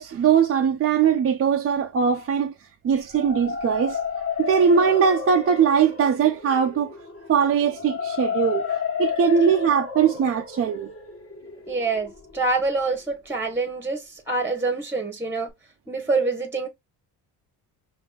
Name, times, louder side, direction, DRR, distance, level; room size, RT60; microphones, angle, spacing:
voice 1, 0.0-2.5 2.8-4.0 4.4-6.9 7.3-10.9, right 7 dB, 35° right, 0.4 m, -21 dB
sound 1, 2.9-12.8, left 6 dB, 35° left, 1.2 m, -32 dB
voice 2, 11.7-15.5 15.9-16.7, right 3 dB, 5° right, 1.0 m, -26 dB
5.2 x 2.6 x 2.3 m
cardioid pair, 105°, 40 cm